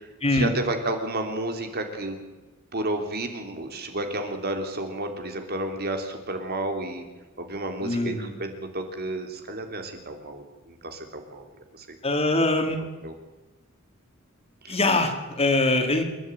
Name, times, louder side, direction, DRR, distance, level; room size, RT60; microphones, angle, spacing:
voice 1, 0.3-2.2 2.7-7.0 7.4-11.4 11.7-12.0 13.0-13.1 14.6-14.8, right 1 dB, 50° right, 5 dB, 3.2 m, -31 dB
voice 2, 7.8-8.3 12.0-12.8 14.7-16.0, left 2 dB, 30° left, 5 dB, 2.9 m, -23 dB
28.0 x 12.5 x 9.2 m, 1.2 s
head